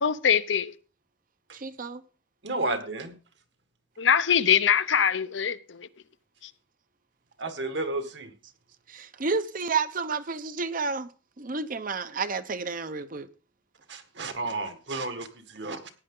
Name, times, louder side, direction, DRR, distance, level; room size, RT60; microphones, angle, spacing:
voice 1, 0.0-0.7 4.0-5.9, left 7 dB, 70° left, 0.7 m, -23 dB
voice 2, 1.5-2.0 8.9-11.1 11.4-13.3, right 4 dB, 45° right, 0.8 m, -30 dB
voice 3, 2.4-3.1 7.4-8.3 13.9-15.9, right 2 dB, 60° right, 1.7 m, -32 dB
15.5 x 9.9 x 3.8 m
head